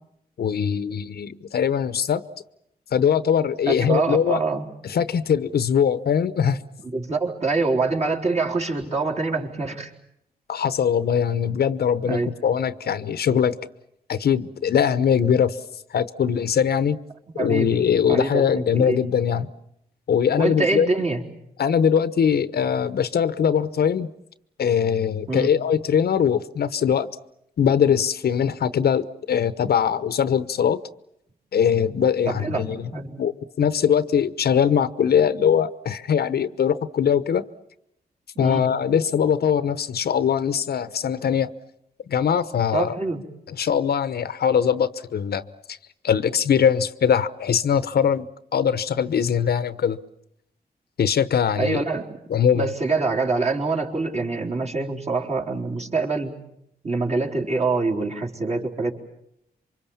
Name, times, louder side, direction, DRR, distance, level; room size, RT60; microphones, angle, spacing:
voice 1, 0.4-2.2 2.9-4.4 4.8-6.6 10.5-13.6 14.1-15.6 15.9-17.0 17.4-19.5 20.1-20.9 21.6-24.1 24.6-27.1 27.6-30.8 31.5-32.9 33.2-33.3 33.6-37.4 38.4-41.5 42.1-43.0 43.5-45.8 46.0-48.3 48.5-50.0 51.0-51.8 52.3-52.7, left 8 dB, 75° left, 1.0 m, -21 dB
voice 2, 3.7-4.6 6.9-9.9 12.0-12.3 17.3-17.7 18.1-19.0 20.4-21.2 25.3-25.5 32.3-32.7 32.9-33.2 38.4-38.6 42.7-43.2 51.6-52.1 52.5-56.4 56.8-58.9, right 3 dB, 40° right, 4.0 m, -25 dB
27.5 x 24.5 x 7.3 m
wide cardioid pair, 100°, 16 cm